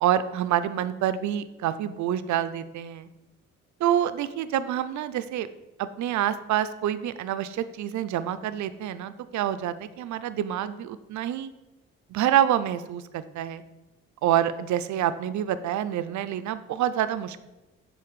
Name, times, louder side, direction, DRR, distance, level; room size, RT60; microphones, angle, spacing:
voice 1, 0.0-3.1 3.8-5.5 5.8-11.5 12.1-13.6 14.2-17.4, right 11 dB, 70° right, 13 dB, 0.5 m, -27 dB
7.8 x 4.0 x 4.7 m, 1.1 s
cardioid pair, 90°, 30 cm